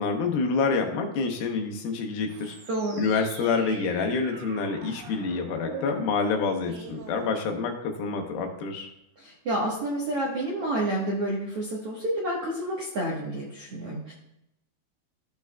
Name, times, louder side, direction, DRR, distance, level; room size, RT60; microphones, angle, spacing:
voice 1, 0.0-2.6 2.9-8.9, left 4 dB, 75° left, 3 dB, 2.6 m, -27 dB
sound 1, 2.3-7.9, right 4 dB, 90° right, 3.1 m, -44 dB
voice 2, 2.7-3.0 9.2-14.1, right 1 dB, 70° right, -4 dB, 1.4 m, -29 dB
14.0 x 6.0 x 2.2 m, 0.83 s
omnidirectional pair, 4.4 m